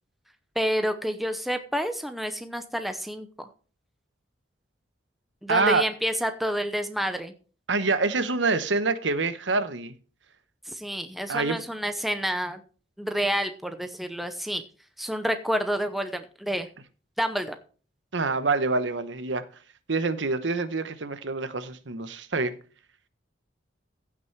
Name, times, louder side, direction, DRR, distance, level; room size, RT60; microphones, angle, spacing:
voice 1, 0.6-3.5 5.4-7.3 10.7-12.6 13.0-14.6 15.0-16.7 17.2-17.6, equal, ahead, 0.8 m, -29 dB
voice 2, 5.5-5.8 7.7-9.9 11.3-11.6 18.1-19.5 19.9-22.5, right 3 dB, 80° right, 1.0 m, -26 dB
15.5 x 6.1 x 4.6 m
head